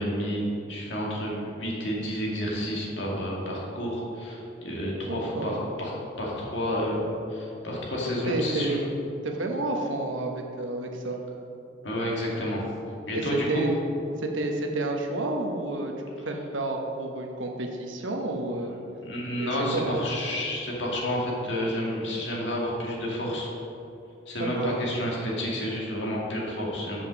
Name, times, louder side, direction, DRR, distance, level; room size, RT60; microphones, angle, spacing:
voice 1, 0.0-5.9 6.2-8.8 11.8-12.6 13.1-13.6 18.6-23.5 24.3-27.1, equal, 70° left, -3 dB, 1.9 m, -30 dB
voice 2, 5.1-5.6 8.3-8.9 9.2-11.2 13.1-13.8 14.2-15.9 16.2-18.8 19.4-20.0 24.4-24.8, right 2 dB, 85° right, 2 dB, 1.1 m, -30 dB
7.2 x 5.3 x 6.1 m, 2.9 s
head